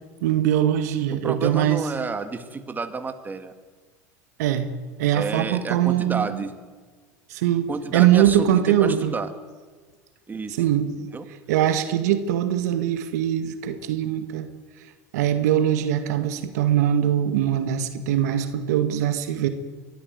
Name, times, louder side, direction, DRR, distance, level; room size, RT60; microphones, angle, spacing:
voice 1, 0.2-1.8 4.4-4.7 5.0-6.4 7.3-9.1 10.5-10.9 11.5-14.5 15.1-19.5, right 11 dB, 80° right, 9 dB, 1.9 m, -22 dB
voice 2, 1.1-3.5 5.1-6.5 7.7-9.3 10.3-10.6 11.1-11.3, right 4 dB, 20° right, 8 dB, 2.1 m, -30 dB
23.0 x 14.0 x 9.5 m, 1.4 s
hypercardioid pair, 95°, 9 cm